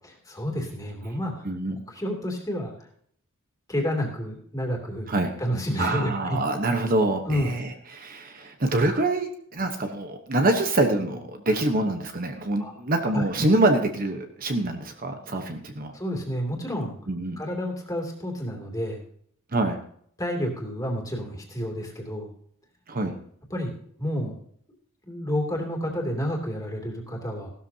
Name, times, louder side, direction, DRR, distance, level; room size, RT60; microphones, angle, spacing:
voice 1, 0.0-1.4 1.9-2.9 3.7-5.1 5.4-6.4 7.3-7.5 12.6-12.7 13.1-13.3 15.9-17.0 17.4-19.0 20.2-22.3 23.5-23.7 24.0-24.4 25.1-27.5, equal, 15° left, 1 dB, 2.7 m, -30 dB
voice 2, 1.4-1.8 5.1-5.3 5.8-15.9 17.1-17.4 19.5-19.8 22.9-23.2, right 2 dB, 40° right, 5 dB, 1.1 m, -25 dB
16.0 x 13.0 x 2.8 m, 0.63 s
head